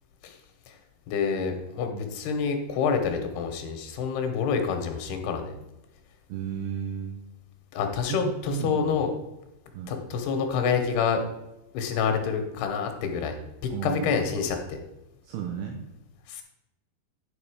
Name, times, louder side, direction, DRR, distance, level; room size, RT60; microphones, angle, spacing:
voice 1, 1.1-5.5 7.7-9.1 9.9-11.2 11.7-13.4 13.6-14.8 16.3-16.4, left 6 dB, 75° left, 5 dB, 2.9 m, -27 dB
voice 2, 6.3-7.2 8.1-8.9 9.7-10.0 13.7-14.1 15.2-15.8, right 7 dB, 75° right, 2 dB, 2.6 m, -33 dB
10.5 x 5.3 x 4.9 m, 0.96 s
omnidirectional pair, 5.0 m